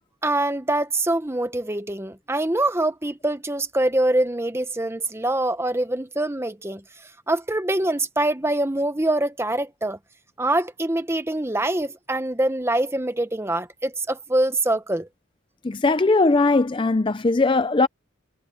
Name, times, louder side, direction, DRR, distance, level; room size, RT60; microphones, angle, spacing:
voice 1, 0.2-6.8 7.3-10.0 10.4-15.1, right 1 dB, 10° right, 0.9 m, -24 dB
voice 2, 15.6-17.9, left 3 dB, 25° left, 0.4 m, -19 dB
head